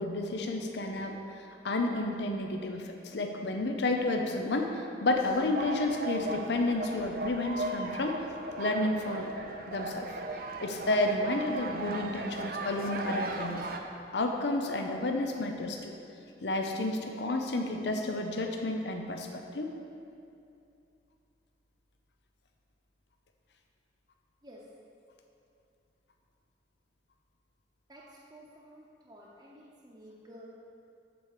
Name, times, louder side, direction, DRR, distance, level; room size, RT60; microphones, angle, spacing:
voice 1, 0.0-8.2 8.6-9.3 9.7-10.1 10.6-13.6 14.1-15.9 16.4-19.7, left 2 dB, 80° left, 3 dB, 0.7 m, -31 dB
sound 1, 5.1-13.8, right 2 dB, 55° right, 0.6 m, -37 dB
voice 2, 28.3-30.5, equal, 20° right, -6 dB, 0.8 m, -52 dB
8.6 x 4.7 x 6.6 m, 2.6 s
head